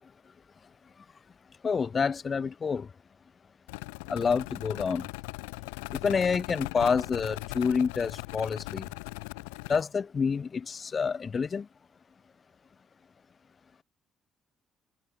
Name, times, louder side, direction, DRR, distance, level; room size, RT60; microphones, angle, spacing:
voice 1, 1.6-2.9 4.1-5.0 6.0-8.8 9.7-11.6, left 5 dB, 40° left, 0.8 m, -28 dB
sound 1, 3.7-9.8, left 29 dB, 80° left, 2.3 m, -39 dB
hypercardioid pair, 50°, 0 cm